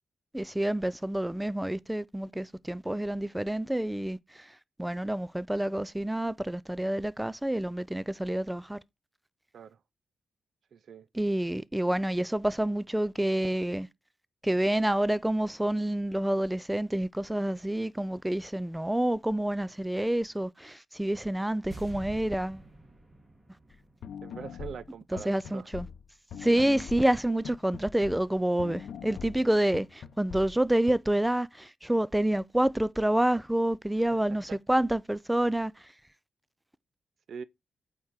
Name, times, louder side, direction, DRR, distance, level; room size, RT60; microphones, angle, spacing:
voice 1, 0.3-4.5 4.8-8.8 11.1-13.9 14.4-22.6 25.3-25.9 26.4-35.7, right 1 dB, 10° right, 0.4 m, -28 dB
voice 2, 10.7-11.1 24.2-25.7 26.6-26.7 34.5-34.6 37.3-37.4, right 6 dB, 70° right, 0.5 m, -42 dB
sound 1, 21.7-24.9 25.2-25.3, right 2 dB, 35° right, 2.9 m, -47 dB
sound 2, 23.7-23.8 24.0-28.3 28.6-30.9, left 8 dB, 80° left, 0.6 m, -42 dB
8.5 x 3.7 x 4.7 m
cardioid pair, 75°, 0 cm